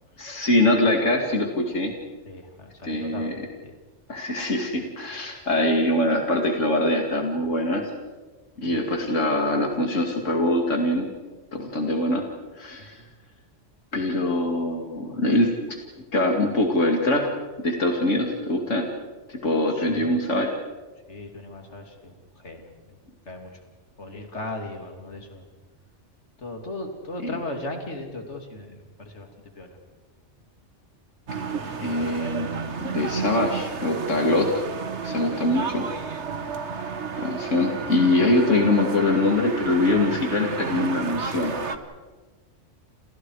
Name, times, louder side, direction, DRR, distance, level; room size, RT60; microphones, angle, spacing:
voice 1, 0.2-2.0 2.8-3.4 4.1-7.9 8.6-11.1 11.5-12.3 12.6-13.0 13.9-15.8 16.1-17.4 17.6-18.9 19.3-20.5 27.2-27.4 31.8-32.6 32.9-34.5 35.0-35.8 37.2-41.5, left 1 dB, 90° left, 2 dB, 2.8 m, -23 dB
voice 2, 2.2-3.3 3.6-3.7 8.6-8.8 12.8-13.1 19.7-20.2 21.1-23.0 23.3-23.6 24.0-25.4 26.4-29.3 29.6-29.8 36.3-36.5, left 2 dB, 65° left, 3 dB, 3.3 m, -37 dB
sound 1, 31.3-41.8, right 5 dB, 65° right, 1.7 m, -32 dB
29.0 x 29.0 x 4.9 m, 1.3 s
omnidirectional pair, 1.2 m